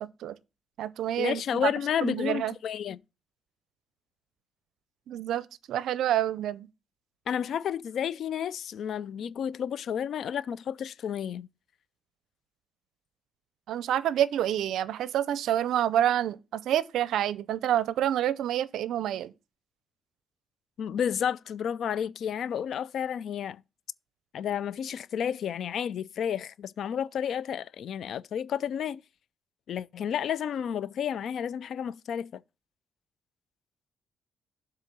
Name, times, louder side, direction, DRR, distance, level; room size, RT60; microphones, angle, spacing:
voice 1, 0.0-0.4 0.8-1.7 2.0-2.6 5.1-6.7 13.7-19.3, right 11 dB, 75° right, 0.5 m, -28 dB
voice 2, 1.2-3.0 7.3-11.5 20.8-23.6 24.3-29.0 29.7-32.4, left 8 dB, 65° left, 0.3 m, -31 dB
7.4 x 3.7 x 6.5 m
cardioid pair, 90°, 0 cm